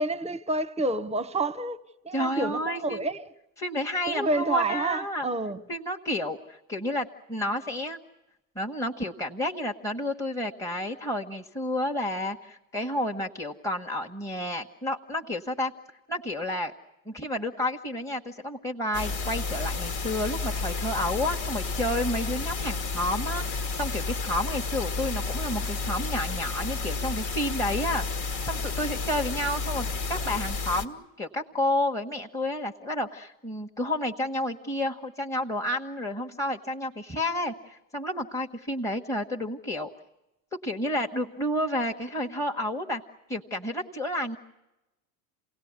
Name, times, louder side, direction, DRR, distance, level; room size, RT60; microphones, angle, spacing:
voice 1, 0.0-3.2 4.1-5.6, right 2 dB, 15° right, 0.9 m, -29 dB
voice 2, 2.1-3.1 3.6-5.3 5.7-8.0 8.5-15.7 16.1-16.7 17.0-39.9 40.6-43.0 43.3-44.4, left 1 dB, 5° left, 1.3 m, -30 dB
sound 1, 18.9-30.8, left 4 dB, 55° left, 1.8 m, -31 dB
27.5 x 18.5 x 9.6 m
supercardioid pair, 100°, 42 cm